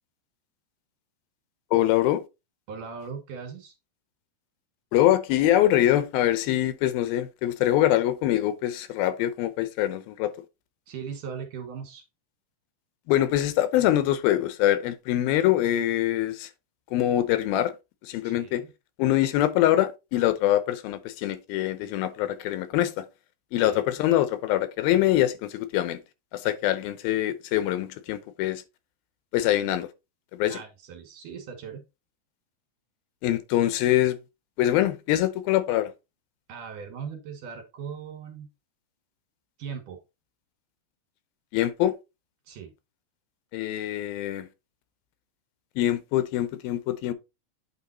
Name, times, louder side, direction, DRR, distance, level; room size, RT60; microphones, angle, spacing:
voice 1, 1.7-2.2 4.9-10.3 13.1-16.5 16.9-17.7 18.0-18.6 19.0-23.1 23.5-26.0 26.3-28.6 29.3-29.9 30.3-30.6 33.2-34.2 34.6-35.9 41.5-42.0 43.5-44.5 45.8-47.1, left 13 dB, 85° left, 2.6 m, -24 dB
voice 2, 2.7-3.7 10.9-12.0 18.2-18.7 23.6-23.8 30.5-31.8 36.5-38.5 39.6-40.0 42.5-42.7, right 6 dB, 65° right, 2.9 m, -39 dB
8.8 x 3.7 x 4.1 m
omnidirectional pair, 4.2 m